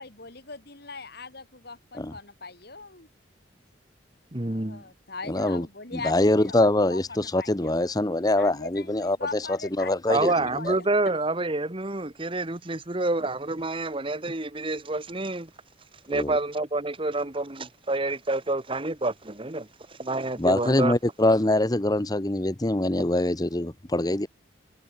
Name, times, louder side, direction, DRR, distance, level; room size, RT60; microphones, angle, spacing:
voice 1, 0.0-3.1 4.4-7.8 8.4-10.9, left 4 dB, 55° left, 3.0 m, -40 dB
voice 2, 4.3-4.8 10.1-15.5 16.1-20.9, right 2 dB, 25° right, 1.3 m, -28 dB
voice 3, 5.3-5.7 6.0-9.2 9.8-10.3 10.6-10.7 16.1-16.3 20.4-24.3, left 1 dB, 20° left, 0.9 m, -24 dB
head